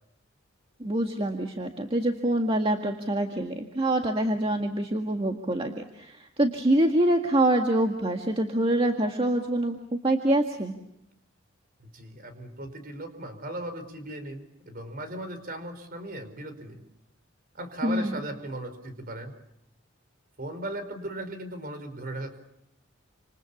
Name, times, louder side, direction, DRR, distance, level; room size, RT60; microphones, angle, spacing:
voice 1, 0.8-10.8 17.8-18.2, right 1 dB, 25° right, 3 dB, 1.8 m, -25 dB
voice 2, 11.8-16.8 17.5-19.3 20.4-22.4, right 1 dB, 45° right, 10 dB, 5.0 m, -37 dB
29.0 x 28.0 x 7.2 m, 0.82 s
head